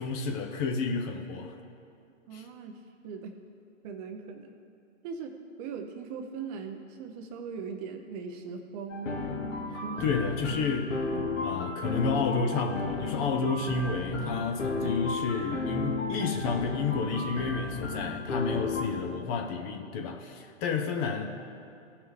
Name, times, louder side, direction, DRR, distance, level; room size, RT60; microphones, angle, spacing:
voice 1, 0.0-1.6 2.3-2.4 9.7-11.0 11.4-21.3, left 4 dB, 30° left, 4 dB, 0.6 m, -31 dB
voice 2, 2.3-3.4 3.8-4.5 5.0-9.3 9.8-10.1, right 5 dB, 30° right, 5 dB, 0.6 m, -40 dB
sound 1, 8.9-18.8, left 3 dB, 75° left, 1.9 m, -33 dB
16.0 x 5.8 x 3.2 m, 2.5 s
hypercardioid pair, 125°, 38 cm